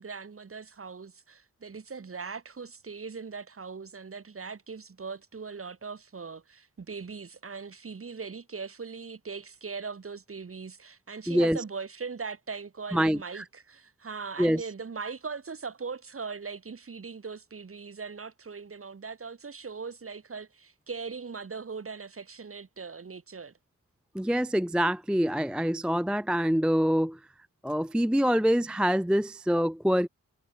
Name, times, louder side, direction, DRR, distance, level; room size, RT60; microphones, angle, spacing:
voice 1, 0.0-23.5 25.5-25.6, right 5 dB, 40° right, 3.8 m, -40 dB
voice 2, 11.3-11.6 12.9-13.4 14.4-14.6 24.1-27.2 27.6-30.1, equal, 5° right, 0.4 m, -25 dB
wide cardioid pair, 175°, 33 cm